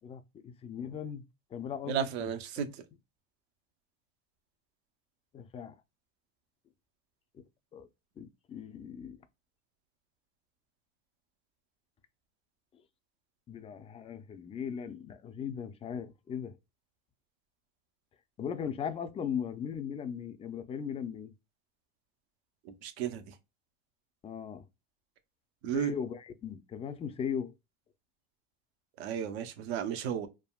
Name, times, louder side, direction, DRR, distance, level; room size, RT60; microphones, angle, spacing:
voice 1, 0.0-1.2 1.5-2.3 5.3-5.7 7.3-7.4 7.7-7.9 8.2-9.2 13.5-16.6 18.4-21.3 24.2-24.6 25.7-27.5, left 7 dB, 20° left, 0.4 m, -38 dB
voice 2, 1.9-2.7 22.7-23.3 25.6-25.9 29.0-30.3, right 8 dB, 80° right, 0.8 m, -33 dB
3.5 x 2.1 x 2.3 m
supercardioid pair, 115°, 32 cm